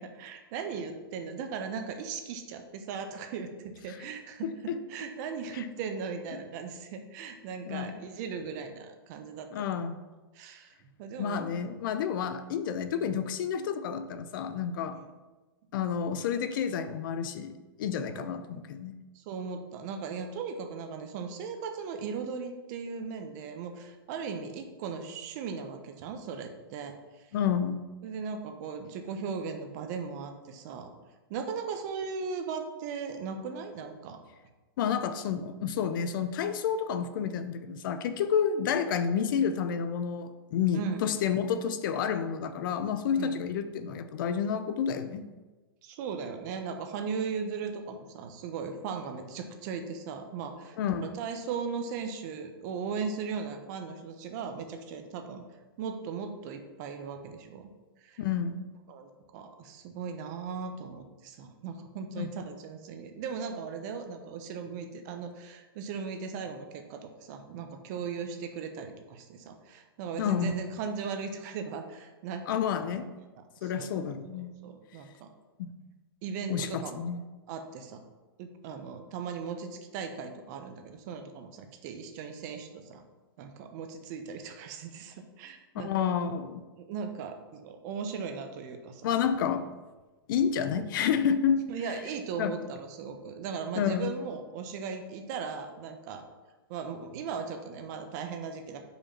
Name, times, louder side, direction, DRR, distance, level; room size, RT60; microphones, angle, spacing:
voice 1, 0.0-9.5 10.3-10.7 11.0-11.5 14.9-15.1 18.1-18.3 19.1-27.3 28.0-30.9 31.3-34.2 40.7-41.1 43.2-43.4 45.8-50.8 51.0-55.4 55.8-57.7 58.0-58.2 58.9-72.4 73.6-73.9 74.3-75.3 76.2-77.1 77.5-78.0 78.4-83.0 83.4-86.1 86.8-89.1 91.7-96.2 96.7-98.9, right 5 dB, 45° right, 6 dB, 1.0 m, -38 dB
voice 2, 4.4-4.8 5.5-5.6 7.7-8.0 9.5-10.0 11.2-15.0 15.7-17.5 17.8-19.0 27.3-27.8 34.8-45.3 50.8-51.1 58.2-58.7 62.2-62.3 70.2-70.6 72.5-73.1 73.6-74.5 75.6-75.7 76.5-77.2 85.7-86.6 89.0-89.7 90.3-91.6 92.4-92.5 93.8-94.1, left 7 dB, 60° left, 10 dB, 0.6 m, -30 dB
5.2 x 4.8 x 5.8 m, 1.2 s
hypercardioid pair, 135°, 13 cm